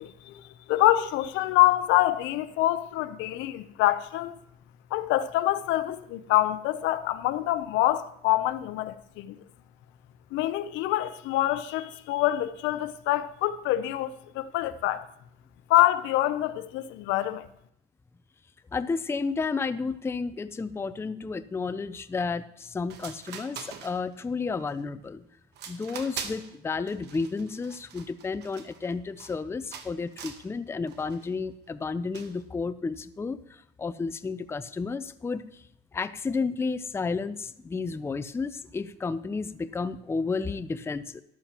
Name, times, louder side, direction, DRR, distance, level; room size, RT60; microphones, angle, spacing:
voice 1, 0.0-4.3 4.9-9.4 10.3-15.1 15.7-17.5, left 15 dB, 75° left, 0.7 m, -26 dB
voice 2, 18.7-25.2 25.7-35.6 35.9-41.2, left 4 dB, 15° left, 0.4 m, -32 dB
sound 1, 22.6-22.7 22.9-24.3 24.7-25.1 25.5-26.6 26.9-29.4 29.7-30.5 30.9-31.3 32.1-32.4, right 7 dB, 60° right, 1.2 m, -42 dB
13.0 x 11.5 x 3.0 m
cardioid pair, 110°, 20 cm